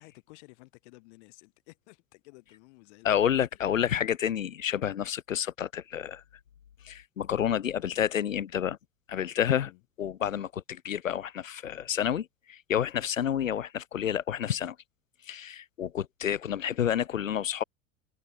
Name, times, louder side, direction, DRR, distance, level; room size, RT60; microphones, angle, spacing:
voice 1, 0.0-3.7 9.5-9.8, left 25 dB, 60° left, 6.2 m, -55 dB
voice 2, 3.0-6.2 6.9-8.8 9.1-9.7 10.0-14.7 15.3-17.6, left 9 dB, 85° left, 0.6 m, -29 dB
figure-of-eight pair, 70°, 38 cm